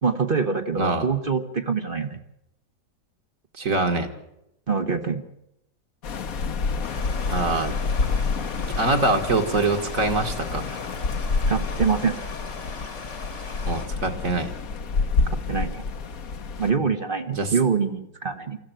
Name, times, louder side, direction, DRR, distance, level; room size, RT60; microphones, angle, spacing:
voice 1, 0.0-2.2 4.7-5.2 11.5-12.2 15.3-15.8 16.6-18.6, right 5 dB, 35° right, 8 dB, 1.2 m, -25 dB
voice 2, 0.8-1.1 3.6-4.1 7.3-7.8 8.7-10.8 13.7-14.5 17.3-17.5, right 2 dB, 50° right, 4 dB, 2.2 m, -24 dB
sound 1, 6.0-16.7, left 4 dB, 55° left, 1.5 m, -28 dB
Stream, 6.8-13.9, left 4 dB, 80° left, 3.4 m, -39 dB
24.0 x 14.5 x 8.9 m, 0.84 s
omnidirectional pair, 1.8 m